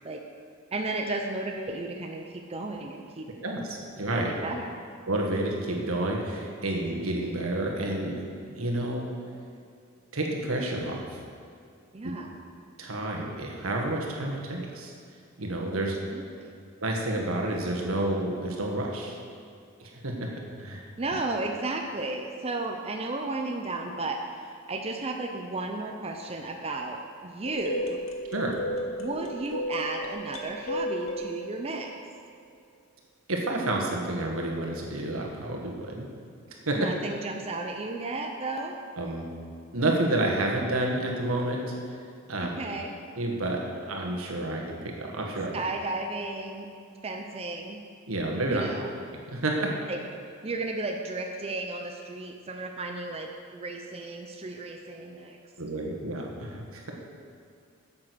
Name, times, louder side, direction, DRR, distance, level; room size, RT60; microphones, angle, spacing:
voice 1, 0.7-3.3 4.1-4.9 11.9-12.3 16.1-16.6 21.0-28.0 29.0-31.9 36.7-38.8 42.4-43.0 45.5-46.7 47.0-47.8 48.5-48.9 49.9-50.0 50.4-55.4, right 2 dB, 30° right, 2 dB, 0.6 m, -34 dB
voice 2, 3.4-4.3 5.1-8.2 8.5-9.1 10.1-11.2 12.8-14.9 15.4-15.9 16.8-19.2 19.8-20.1 20.6-20.9 28.3-28.6 33.3-36.1 36.7-36.8 39.0-39.3 39.7-42.0 42.3-42.5 43.2-45.5 48.1-48.6 49.3-49.7 55.6-56.9, right 1 dB, 85° right, 0 dB, 1.7 m, -30 dB
sound 1, 27.4-32.6, equal, 70° left, 1.1 m, -34 dB
9.3 x 7.5 x 6.2 m, 2.4 s
head